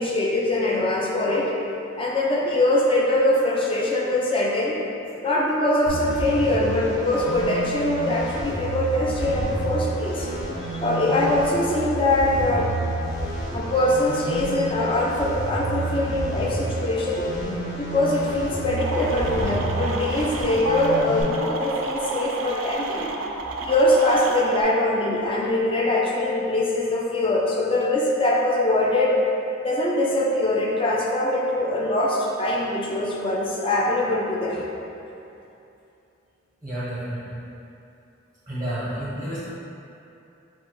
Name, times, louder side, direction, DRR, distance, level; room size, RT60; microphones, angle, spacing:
voice 1, 0.0-1.5 2.0-4.8 5.2-10.3 10.8-12.7 13.5-17.3 17.7-23.1 23.6-29.2 29.6-34.7, left 1 dB, 25° left, -4 dB, 0.5 m, -23 dB
sound 1, 5.9-21.2, right 1 dB, 90° left, 1.1 m, -30 dB
sound 2, 18.8-24.6, right 3 dB, 85° right, 0.4 m, -31 dB
voice 2, 36.6-37.4 38.5-39.5, right 1 dB, 20° right, -11 dB, 0.7 m, -30 dB
4.5 x 2.1 x 4.4 m, 2.8 s
head